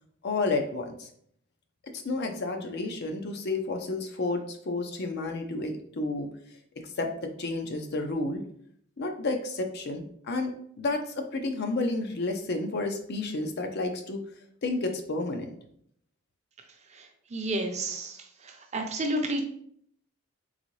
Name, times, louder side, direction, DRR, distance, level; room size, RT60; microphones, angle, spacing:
voice 1, 0.2-1.1 1.9-6.3 7.0-8.4 9.0-14.2 14.6-15.5, left 2 dB, 50° left, 4 dB, 0.5 m, -31 dB
voice 2, 16.9-18.2 18.4-19.4, right 1 dB, 35° right, 4 dB, 0.6 m, -31 dB
3.9 x 3.6 x 3.1 m, 0.65 s
head